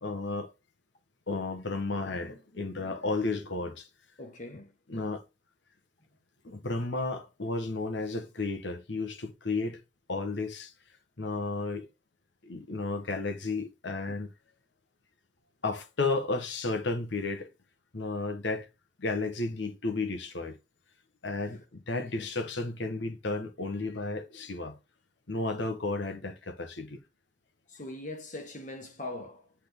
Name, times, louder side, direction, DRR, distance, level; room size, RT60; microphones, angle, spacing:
voice 1, 0.0-0.5 1.3-3.9 4.9-5.2 6.4-9.8 10.1-10.7 11.2-11.9 12.4-14.3 15.6-17.5 17.9-18.7 19.0-20.6 21.2-24.8 25.3-27.0, left 3 dB, 65° left, 1.1 m, -33 dB
voice 2, 4.2-4.7 14.1-14.2 21.9-22.3 27.7-29.5, left 2 dB, 40° left, 1.3 m, -42 dB
8.1 x 3.6 x 3.6 m
head